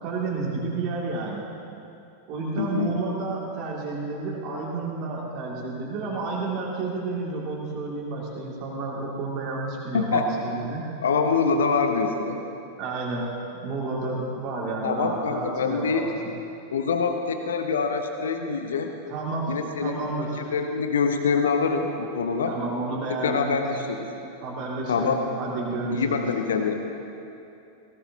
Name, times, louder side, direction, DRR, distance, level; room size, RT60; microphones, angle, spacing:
voice 1, 0.0-1.5 2.3-10.9 12.8-16.3 19.1-20.5 22.5-23.6 24.4-26.3, right 3 dB, 40° right, -5 dB, 2.5 m, -31 dB
voice 2, 2.6-3.0 9.9-10.3 11.0-12.4 14.8-16.1 16.7-18.9 19.5-20.1 20.4-22.5 23.1-24.1 24.9-25.2 25.9-26.7, left 5 dB, 65° left, 5 dB, 0.9 m, -25 dB
19.0 x 17.5 x 2.8 m, 2.7 s
figure-of-eight pair, 90°, 0 cm